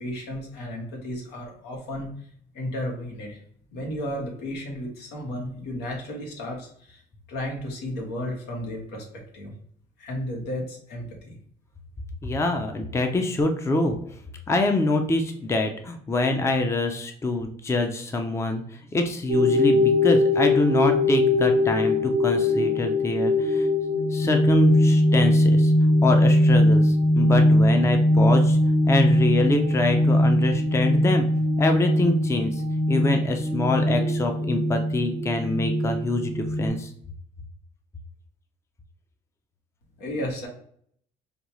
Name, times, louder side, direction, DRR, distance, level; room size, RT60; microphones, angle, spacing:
voice 1, 0.0-2.1 2.5-3.4 3.7-7.0 7.3-9.0 9.3-9.5 10.0-11.4 40.0-40.5, left 1 dB, 85° left, 0 dB, 1.3 m, -33 dB
voice 2, 12.2-14.0 14.5-18.6 18.9-23.7 24.1-25.7 26.0-28.6 28.9-31.3 31.6-32.5 32.9-36.9, left 2 dB, 15° left, 5 dB, 0.5 m, -25 dB
sound 1, 19.3-36.7, left 1 dB, 85° right, 0.7 m, -21 dB
5.0 x 2.3 x 3.0 m, 0.63 s
cardioid pair, 110°, 17 cm